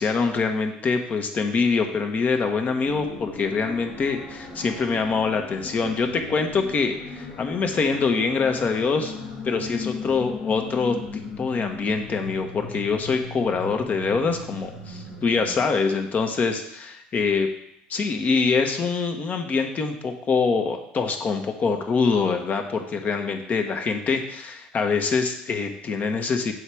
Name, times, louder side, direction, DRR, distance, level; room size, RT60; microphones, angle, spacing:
voice 1, 0.0-9.1 9.4-17.5 17.9-26.5, left 4 dB, 40° left, 5 dB, 1.2 m, -24 dB
sound 1, 2.8-15.7, left 4 dB, 65° left, 2.1 m, -37 dB
7.8 x 3.4 x 6.3 m, 0.74 s
hypercardioid pair, 75°, 4 cm